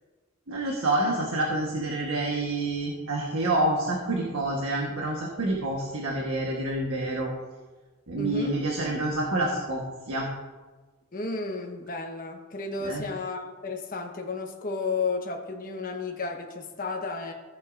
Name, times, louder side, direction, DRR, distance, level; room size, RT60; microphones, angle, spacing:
voice 1, 0.5-7.3 8.1-10.3 12.8-13.1, right 2 dB, 80° right, -1 dB, 1.4 m, -28 dB
voice 2, 8.2-8.6 11.1-17.3, left 3 dB, 40° left, 2 dB, 1.2 m, -33 dB
15.0 x 8.1 x 2.6 m, 1.3 s
head